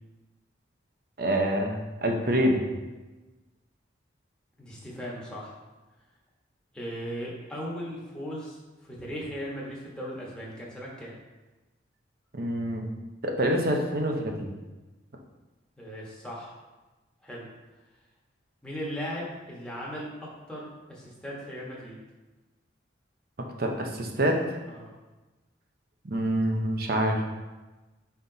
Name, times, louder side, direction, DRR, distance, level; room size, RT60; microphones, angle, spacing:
voice 1, 1.2-2.6 12.3-12.8 13.2-14.5 23.6-24.4 26.0-27.2, right 1 dB, 50° right, 2 dB, 0.8 m, -26 dB
voice 2, 4.6-5.5 6.7-8.6 8.8-11.1 15.8-16.5 17.2-17.4 18.6-20.1 20.5-22.0 24.7-24.9, equal, 5° left, -6 dB, 1.3 m, -37 dB
5.4 x 4.4 x 3.9 m, 1.1 s
head